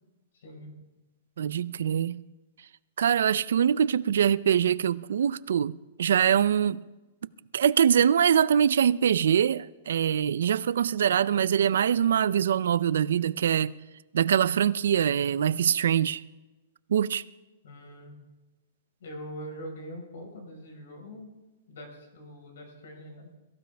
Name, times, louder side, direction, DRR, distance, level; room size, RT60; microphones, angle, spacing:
voice 1, 0.3-0.7 17.6-18.2 19.0-21.3 21.7-23.3, equal, 75° left, 4.9 m, -43 dB
voice 2, 1.4-2.2 3.0-6.8 7.5-13.7 14.1-16.2 16.9-17.2, right 8 dB, 85° right, 0.5 m, -23 dB
23.0 x 15.0 x 3.5 m
supercardioid pair, 175°, 0 cm